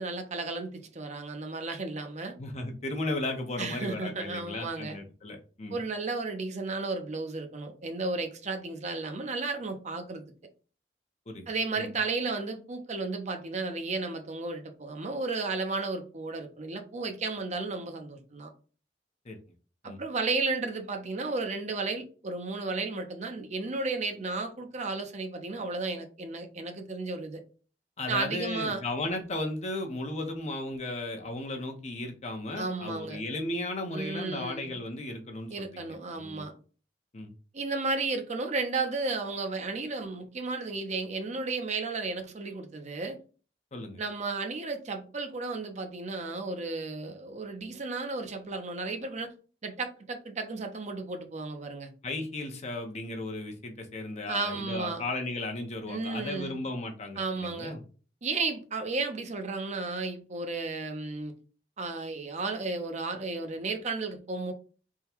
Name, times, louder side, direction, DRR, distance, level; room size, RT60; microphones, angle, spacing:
voice 1, 0.0-2.3 3.6-5.0 5.7-10.2 11.5-18.5 19.8-27.4 28.1-28.8 32.6-33.2 33.9-34.8 35.5-36.5 37.5-43.2 44.0-49.3 49.6-51.9 54.2-55.0 55.9-56.7 57.2-57.8 58.2-61.3 61.8-64.5, right 3 dB, 40° right, 0.6 m, -33 dB
voice 2, 2.4-5.8 11.3-11.5 11.8-11.9 19.2-19.4 19.8-20.0 28.0-36.5 37.1-37.3 43.7-44.0 52.0-57.8, left 2 dB, 40° left, 0.8 m, -35 dB
3.6 x 2.2 x 4.3 m
head